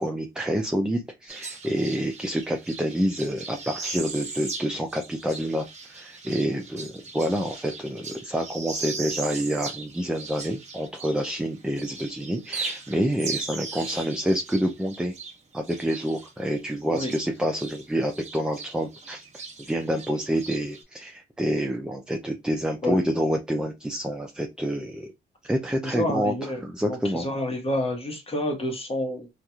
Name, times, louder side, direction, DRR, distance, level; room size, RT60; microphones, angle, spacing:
voice 1, 0.0-15.1 15.5-25.1 25.4-26.3 26.6-27.3, equal, 5° right, 0.3 m, -28 dB
sound 1, 1.3-11.5 11.7-17.8 18.1-20.8, right 4 dB, 35° right, 0.9 m, -38 dB
voice 2, 25.8-26.6 26.9-29.3, left 1 dB, 30° left, 1.1 m, -29 dB
2.9 x 2.4 x 2.3 m
cardioid pair, 90°, 20 cm